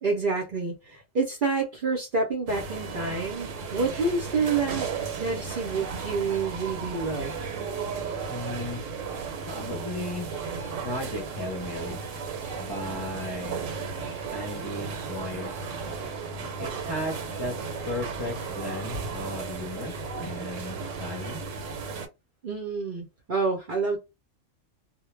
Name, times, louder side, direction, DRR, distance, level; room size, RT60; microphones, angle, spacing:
voice 1, 0.0-4.9 5.2-7.4 22.4-24.0, right 4 dB, 55° right, 0.6 m, -28 dB
sound 1, 2.5-22.1, right 5 dB, 80° right, 1.0 m, -35 dB
voice 2, 8.3-8.8 9.5-10.3 10.8-12.0 12.6-13.6 14.3-15.6 16.3-17.6 17.9-21.4, left 1 dB, 25° left, 0.6 m, -35 dB
2.2 x 2.1 x 3.1 m
omnidirectional pair, 1.4 m